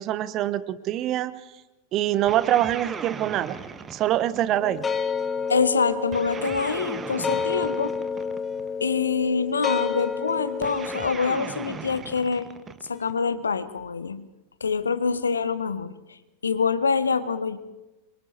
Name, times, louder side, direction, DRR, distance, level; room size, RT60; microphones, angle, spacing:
voice 1, 0.0-1.4 1.9-3.6 3.9-4.8, right 13 dB, 35° right, 14 dB, 1.1 m, -24 dB
sound 1, 2.3-4.9 6.1-8.7 10.6-13.2, right 6 dB, 20° right, 1.4 m, -38 dB
sound 2, 4.6-11.1, left 5 dB, 15° left, 1.4 m, -30 dB
voice 2, 5.5-7.9 8.8-12.5 12.9-14.3 14.6-15.9 16.4-17.6, left 5 dB, 75° left, 14 dB, 1.2 m, -25 dB
27.0 x 24.0 x 4.4 m, 1.1 s
figure-of-eight pair, 90°, 0 cm